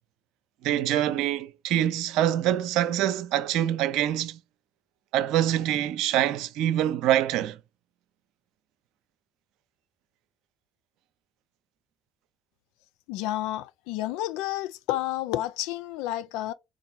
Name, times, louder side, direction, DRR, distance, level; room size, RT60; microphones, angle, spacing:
voice 1, 0.6-4.4 5.1-7.6, right 12 dB, 70° right, 0.5 m, -25 dB
voice 2, 13.1-16.5, left 14 dB, 75° left, 0.4 m, -30 dB
4.5 x 2.5 x 3.9 m
hypercardioid pair, 55°, 0 cm